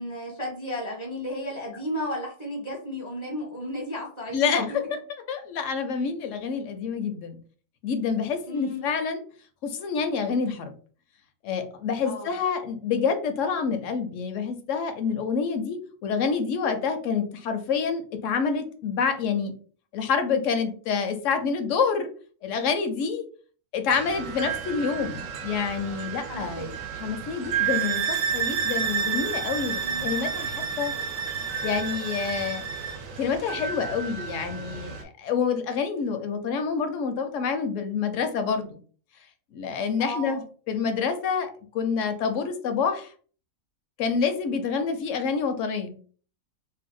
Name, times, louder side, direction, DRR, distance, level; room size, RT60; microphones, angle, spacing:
voice 1, 0.0-4.5 8.5-8.9 12.0-12.3 26.3-26.8 29.8-30.1 40.0-40.4, left 1 dB, 20° right, -1 dB, 0.6 m, -34 dB
voice 2, 4.3-5.0 5.3-7.4 7.8-9.2 9.6-10.7 11.4-19.5 19.9-22.1 22.4-23.2 23.7-30.9 31.6-32.6 33.2-38.8 39.5-43.1 44.0-46.0, left 5 dB, 70° left, 7 dB, 0.8 m, -27 dB
sound 1, 23.9-35.0, right 8 dB, 70° right, 0.9 m, -35 dB
sound 2, 27.6-33.0, right 6 dB, 90° right, 0.4 m, -30 dB
2.7 x 2.2 x 3.6 m, 0.42 s
omnidirectional pair, 1.5 m